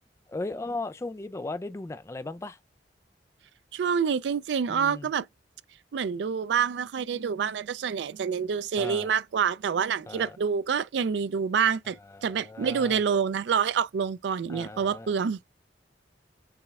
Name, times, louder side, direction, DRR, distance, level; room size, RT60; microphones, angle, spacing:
voice 1, 0.3-2.6 4.7-5.1 8.8-9.1 10.1-10.4 12.0-13.0 14.5-15.1, left 2 dB, 15° left, 0.3 m, -37 dB
voice 2, 3.7-5.2 5.9-12.0 12.2-15.4, right 6 dB, 75° right, 0.4 m, -27 dB
6.9 x 3.2 x 2.3 m
head